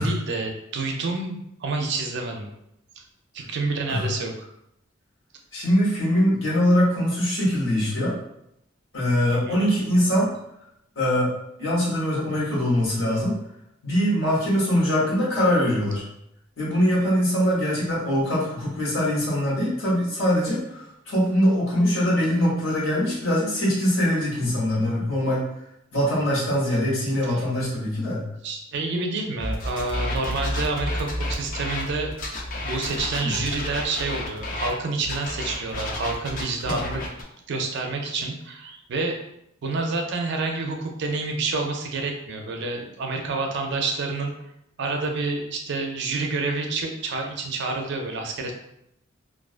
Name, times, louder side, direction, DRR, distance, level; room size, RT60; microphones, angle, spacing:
voice 1, 0.0-2.5 3.3-4.5 9.3-9.6 26.9-27.0 27.3-27.4 28.4-32.1 32.6-37.0 37.5-39.2 39.6-44.3 44.8-48.5, right 3 dB, 60° right, 3 dB, 0.4 m, -28 dB
voice 2, 5.5-8.1 8.9-10.3 11.0-11.3 11.6-13.4 13.8-16.0 16.6-25.4 25.9-28.3 33.2-33.3 36.7-36.8, equal, 70° left, -6 dB, 1.0 m, -22 dB
sound 1, 29.4-34.7 35.0-37.2, left 1 dB, 45° left, 0.4 m, -30 dB
2.3 x 2.3 x 2.4 m, 0.79 s
head